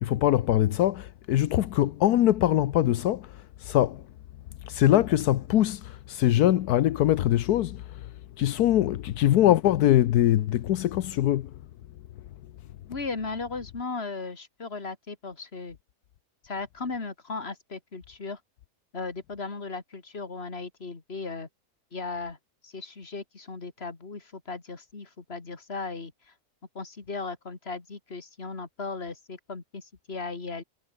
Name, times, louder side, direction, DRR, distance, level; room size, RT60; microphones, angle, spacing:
voice 1, 0.0-4.0 4.6-8.1 8.4-11.6, left 13 dB, 85° left, 1.3 m, -23 dB
voice 2, 12.9-15.8 16.4-18.4 18.9-21.5 21.9-22.4 22.6-26.1 26.7-30.6, left 4 dB, 40° left, 2.7 m, -36 dB
omnidirectional pair, 1.6 m